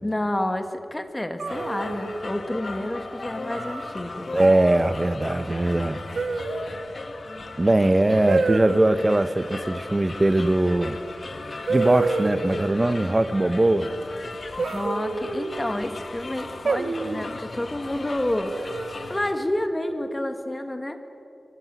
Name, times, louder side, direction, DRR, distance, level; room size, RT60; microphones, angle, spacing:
voice 1, 0.0-4.3 14.6-18.7 19.1-21.0, left 1 dB, 20° left, 7 dB, 1.9 m, -29 dB
sound 1, 1.4-2.3 3.5-3.9 4.4-4.7 6.1-6.8 8.3-8.9 10.8-10.9 11.7-12.6 14.6-15.7 16.6-17.3 18.5-19.1, right 4 dB, 85° right, 1.4 m, -28 dB
sound 2, 1.5-19.3, left 3 dB, 50° left, 1.8 m, -37 dB
voice 2, 4.3-6.0 7.6-11.0 11.7-13.9, right 1 dB, 25° right, 12 dB, 1.1 m, -21 dB
24.0 x 16.5 x 9.5 m, 2.6 s
wide cardioid pair, 90°, 0 cm